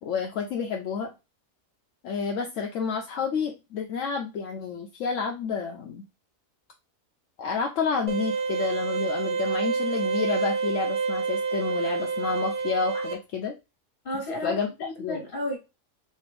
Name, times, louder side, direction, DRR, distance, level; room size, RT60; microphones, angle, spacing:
voice 1, 0.0-1.1 2.0-6.0 7.4-13.5 14.4-15.2, left 5 dB, 70° left, 1.0 m, -30 dB
sound 1, 8.1-13.1, right 5 dB, 45° right, 0.4 m, -28 dB
voice 2, 14.0-15.6, left 1 dB, 40° left, 1.8 m, -33 dB
4.2 x 2.5 x 3.2 m
omnidirectional pair, 1.4 m